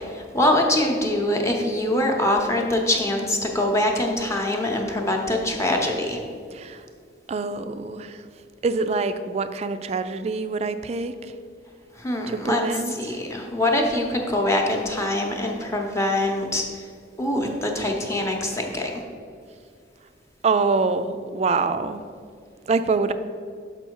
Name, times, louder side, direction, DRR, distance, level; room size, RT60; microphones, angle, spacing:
voice 1, 0.1-6.2 12.0-12.6 12.9-16.6 17.2-19.0, left 1 dB, 15° left, 1 dB, 0.8 m, -23 dB
voice 2, 6.5-6.8 7.3-8.2 8.6-11.1 12.3-13.2 17.4-17.9 20.4-22.0 22.7-23.1, right 4 dB, 35° right, 11 dB, 0.3 m, -25 dB
6.4 x 5.4 x 4.6 m, 2.2 s
head